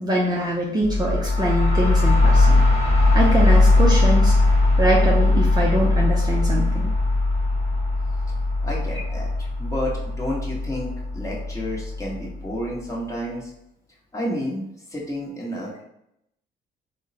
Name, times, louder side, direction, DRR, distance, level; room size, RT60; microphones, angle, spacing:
voice 1, 0.0-2.6 3.1-4.4 4.8-6.9, right 1 dB, 20° right, -4 dB, 0.5 m, -23 dB
sound 1, 0.8-12.5, left 2 dB, 40° left, 1.3 m, -19 dB
voice 2, 8.6-13.5 14.1-14.6 14.9-15.8, equal, 15° left, -4 dB, 1.0 m, -30 dB
3.4 x 2.1 x 2.7 m, 0.79 s
cardioid pair, 90°, 20 cm